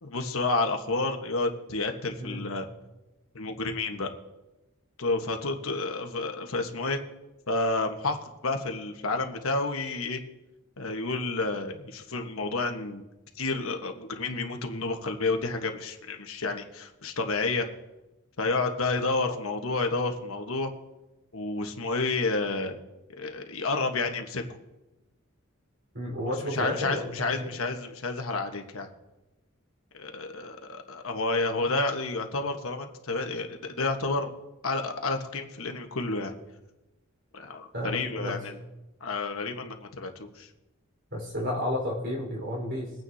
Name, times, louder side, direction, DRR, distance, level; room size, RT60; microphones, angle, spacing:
voice 1, 0.0-2.7 3.3-4.1 5.0-7.0 7.5-10.2 10.8-13.0 13.3-17.7 18.4-20.7 21.3-22.8 23.2-24.4 26.5-28.9 30.0-34.3 34.6-36.3 37.3-38.6 39.0-40.5, left 3 dB, 80° left, 4 dB, 1.3 m, -30 dB
voice 2, 25.9-27.5 37.7-38.4 41.1-42.9, left 1 dB, 55° right, -1 dB, 4.5 m, -32 dB
22.5 x 9.1 x 2.8 m, 1.0 s
head